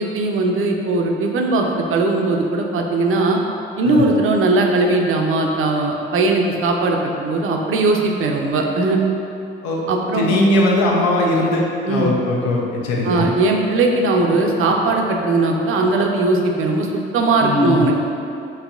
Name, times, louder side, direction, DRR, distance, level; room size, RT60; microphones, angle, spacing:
voice 1, 0.0-3.4 3.8-9.0 9.9-10.4 10.9-11.0 11.9-12.1 13.0-16.9 17.1-18.0, right 2 dB, 45° right, 1 dB, 0.6 m, -19 dB
voice 2, 10.1-13.3 17.4-17.8, left 1 dB, 70° left, -3 dB, 0.8 m, -19 dB
5.3 x 2.9 x 2.4 m, 2.7 s
hypercardioid pair, 50°, 30 cm